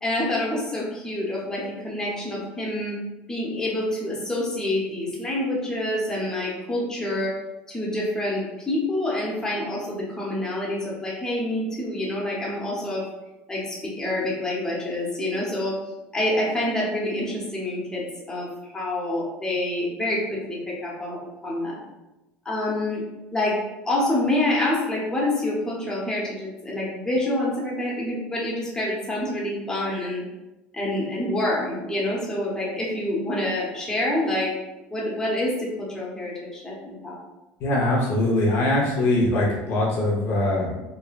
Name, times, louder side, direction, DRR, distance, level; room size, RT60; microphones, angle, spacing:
voice 1, 0.0-3.0 3.3-7.3 7.7-13.0 13.5-15.8 16.1-21.8 22.4-23.0 23.3-23.6 23.9-30.2 30.7-34.5 34.9-37.2, left 1 dB, 15° left, -5 dB, 0.9 m, -27 dB
voice 2, 37.6-40.8, left 1 dB, 55° left, -3 dB, 0.7 m, -22 dB
3.2 x 2.1 x 2.4 m, 1.0 s
supercardioid pair, 100°, 5 cm